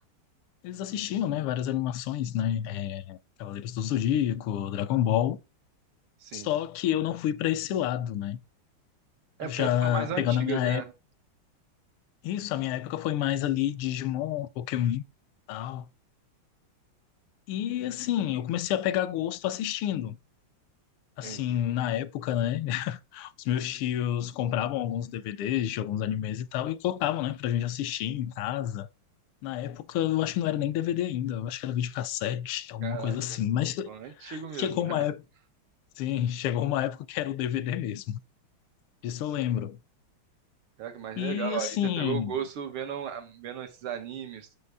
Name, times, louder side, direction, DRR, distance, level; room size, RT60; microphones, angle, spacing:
voice 1, 0.6-5.4 6.3-8.4 9.4-10.8 12.2-15.0 15.5-15.9 17.5-20.2 21.2-28.9 29.4-33.9 34.2-35.2 36.0-38.2 39.0-39.8 41.2-42.3, left 11 dB, 85° left, 1.5 m, -29 dB
voice 2, 9.4-10.9 21.2-21.6 32.8-33.4 33.9-35.1 40.8-44.5, right 8 dB, 80° right, 2.0 m, -36 dB
6.7 x 5.4 x 3.4 m
omnidirectional pair, 2.4 m